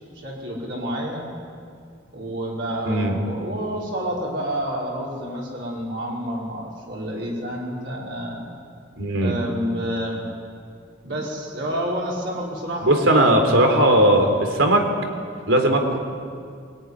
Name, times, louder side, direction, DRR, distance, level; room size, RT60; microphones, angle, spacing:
voice 1, 0.1-1.3 2.1-8.5 9.2-10.3 11.0-14.0, equal, 65° right, -4 dB, 5.0 m, -29 dB
voice 2, 2.9-3.2 9.0-9.4 12.8-14.9 15.5-16.0, right 1 dB, 90° right, 4 dB, 3.5 m, -18 dB
23.5 x 18.0 x 9.7 m, 2.2 s
head